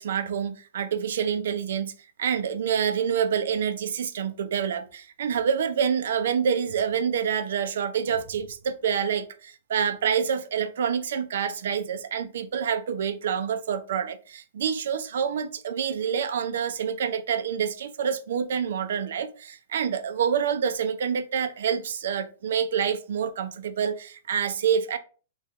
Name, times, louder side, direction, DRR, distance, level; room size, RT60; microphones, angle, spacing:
voice 1, 0.0-1.9 2.2-25.0, right 7 dB, 65° right, 0.4 m, -27 dB
3.4 x 2.3 x 4.3 m
supercardioid pair, 175°, 0 cm